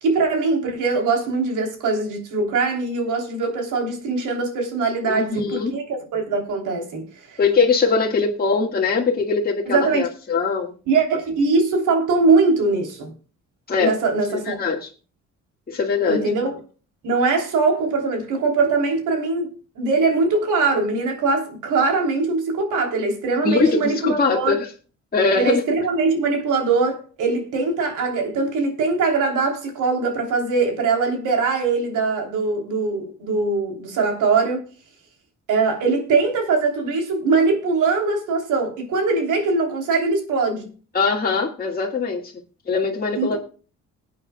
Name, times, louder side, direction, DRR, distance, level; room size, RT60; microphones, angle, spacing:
voice 1, 0.0-7.4 9.7-10.1 10.9-13.1 13.8-14.6 16.1-16.6 17.0-24.6 25.3-34.7 35.5-40.7 43.1-43.4, right 4 dB, 85° right, 3.3 m, -22 dB
voice 2, 5.1-5.7 7.4-10.7 13.7-14.0 14.3-14.9 15.7-16.3 23.4-24.7 25.1-25.6 40.9-42.3 42.7-43.4, left 4 dB, 30° left, 1.7 m, -21 dB
20.5 x 8.6 x 2.2 m
cardioid pair, 90°, 30 cm